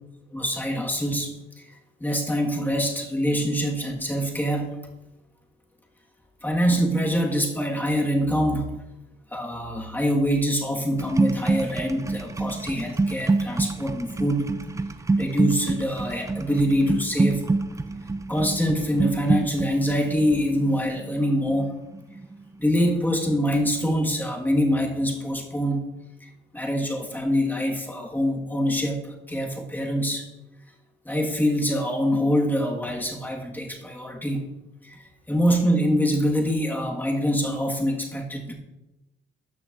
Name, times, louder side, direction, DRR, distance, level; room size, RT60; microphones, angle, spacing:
voice 1, 0.3-1.7 2.0-4.8 6.4-8.8 9.3-14.5 15.2-17.4 18.3-21.8 22.6-25.9 26.5-29.0 29.3-30.2 31.1-34.5 34.8-38.5, equal, 10° left, 0 dB, 1.7 m, -25 dB
sound 1, 11.0-22.8 23.1-23.5, right 3 dB, 15° right, 0.4 m, -27 dB
12.5 x 6.4 x 2.6 m, 0.99 s
cardioid pair, 90°, 20 cm